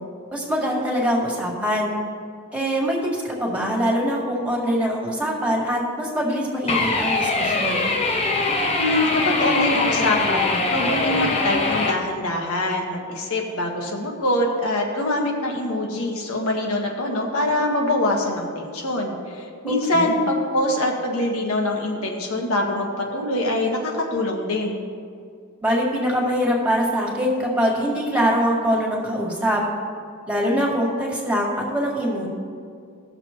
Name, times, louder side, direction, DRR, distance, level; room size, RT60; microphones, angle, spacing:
voice 1, 0.3-2.0 2.5-7.9 19.6-20.1 25.6-29.6 30.3-32.3, equal, 5° right, -2 dB, 1.9 m, -23 dB
sound 1, 6.7-11.9, left 3 dB, 30° left, 0.8 m, -22 dB
voice 2, 8.8-24.8, left 1 dB, 80° left, 0 dB, 1.5 m, -24 dB
17.5 x 6.8 x 3.0 m, 2.3 s
head